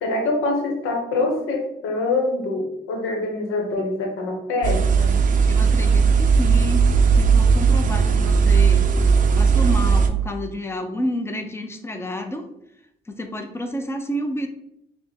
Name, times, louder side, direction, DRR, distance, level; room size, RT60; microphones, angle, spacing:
voice 1, 0.0-5.1, left 2 dB, 90° left, 3 dB, 0.9 m, -25 dB
sound 1, 4.6-10.1, right 5 dB, 40° right, 0.5 m, -17 dB
voice 2, 5.5-8.9 9.4-12.5 13.1-14.5, left 1 dB, 10° left, 5 dB, 0.6 m, -29 dB
4.9 x 2.1 x 3.4 m, 0.80 s
cardioid pair, 90°, 20 cm